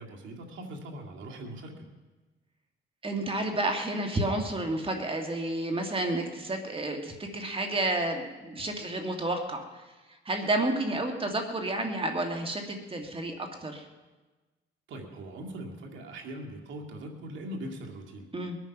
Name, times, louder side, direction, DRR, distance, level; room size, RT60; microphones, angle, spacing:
voice 1, 0.0-1.9 14.9-18.3, right 1 dB, 70° right, 1 dB, 2.4 m, -41 dB
voice 2, 3.0-9.8 10.3-13.9 18.3-18.6, right 2 dB, 25° right, 4 dB, 2.0 m, -30 dB
22.0 x 9.2 x 6.0 m, 1.2 s
cardioid pair, 90°, 20 cm